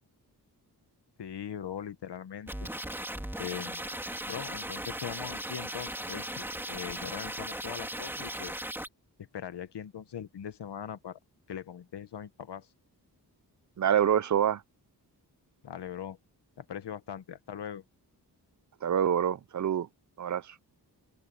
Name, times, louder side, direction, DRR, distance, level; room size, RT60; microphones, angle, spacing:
voice 1, 1.2-2.7 3.4-3.8 4.3-8.5 9.2-11.2 11.5-12.7 15.6-16.2 16.6-17.8, left 9 dB, 85° left, 1.3 m, -40 dB
sound 1, 2.5-8.9, right 1 dB, 5° right, 3.3 m, -37 dB
voice 2, 13.8-14.6 18.8-19.9 20.2-20.6, right 9 dB, 45° right, 0.6 m, -26 dB
open air
wide cardioid pair, 165°, 40 cm